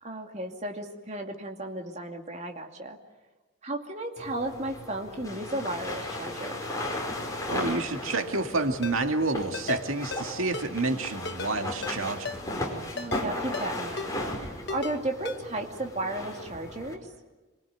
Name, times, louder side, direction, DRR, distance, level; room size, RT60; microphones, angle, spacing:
voice 1, 0.0-3.0 3.6-6.6 12.9-14.2 14.7-17.0, right 1 dB, 35° right, 3 dB, 2.5 m, -34 dB
sound 1, 4.2-16.9, left 1 dB, 15° left, 5.0 m, -36 dB
voice 2, 7.5-12.4, right 3 dB, 90° right, 5 dB, 2.2 m, -29 dB
Ringtone, 8.8-9.0 9.5-9.8 10.1-10.2 10.5-10.7 11.3-11.5 11.8-12.0 12.3-12.4 13.0-13.2 13.5-13.7 14.0-14.1 14.7-14.9 15.3-15.4, left 4 dB, 55° left, 1.4 m, -35 dB
27.0 x 23.0 x 9.4 m, 1.2 s
head